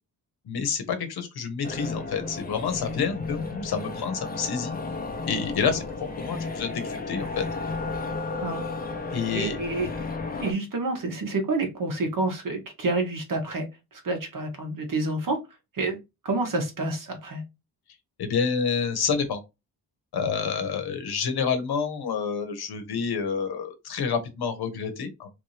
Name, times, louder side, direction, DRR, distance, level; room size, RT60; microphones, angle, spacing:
voice 1, 0.4-4.8 5.3-5.8 6.2-7.4 9.1-9.6 18.2-19.4 20.1-25.3, left 6 dB, 70° left, 1.1 m, -28 dB
sound 1, 1.6-10.5, left 3 dB, 25° left, 1.0 m, -33 dB
voice 2, 9.3-9.9 10.4-13.7 13.9-15.4 15.7-16.0 16.2-17.4, right 2 dB, 55° right, 1.6 m, -28 dB
3.3 x 2.7 x 3.2 m
cardioid pair, 70°, 39 cm